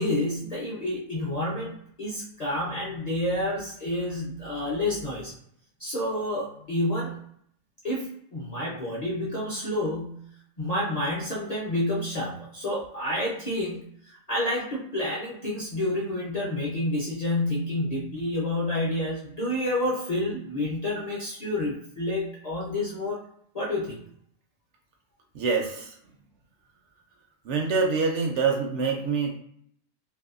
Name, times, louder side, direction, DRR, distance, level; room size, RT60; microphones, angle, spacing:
voice 1, 0.0-5.3 5.8-7.2 7.8-10.2 10.6-23.2 23.5-24.0, left 1 dB, 45° left, -6 dB, 0.5 m, -29 dB
voice 2, 25.3-25.9 27.5-29.4, right 4 dB, 70° right, 1 dB, 0.8 m, -25 dB
2.6 x 2.6 x 2.4 m, 0.67 s
omnidirectional pair, 1.4 m